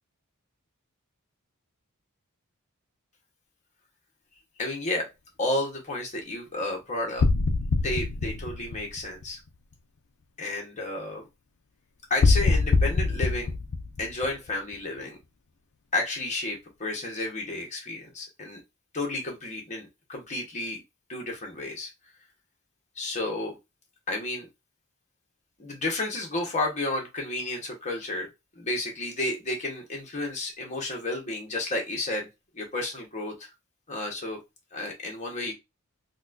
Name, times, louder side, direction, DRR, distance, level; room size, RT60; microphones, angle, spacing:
voice 1, 4.6-5.0 5.4-7.3 7.8-9.4 10.4-11.2 12.1-13.5 14.0-15.2 15.9-18.6 18.9-20.8 21.1-21.9 22.9-23.6 24.1-24.5 25.6-28.3 28.5-32.3 32.5-33.5 33.9-34.4 34.7-35.5, left 2 dB, 35° left, 0 dB, 1.0 m, -31 dB
sound 1, 7.2-9.5 12.2-14.7, left 3 dB, 60° left, 0.4 m, -24 dB
4.0 x 2.3 x 2.5 m, 0.22 s
head